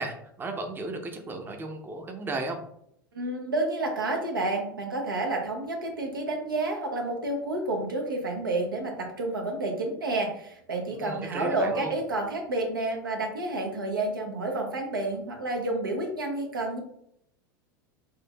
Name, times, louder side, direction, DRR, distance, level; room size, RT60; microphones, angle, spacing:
voice 1, 0.0-2.6 10.9-11.9, right 2 dB, 20° right, 5 dB, 0.6 m, -34 dB
voice 2, 3.1-16.8, right 2 dB, 90° right, 1 dB, 0.7 m, -30 dB
4.4 x 2.4 x 2.2 m, 0.72 s
hypercardioid pair, 90°, 11 cm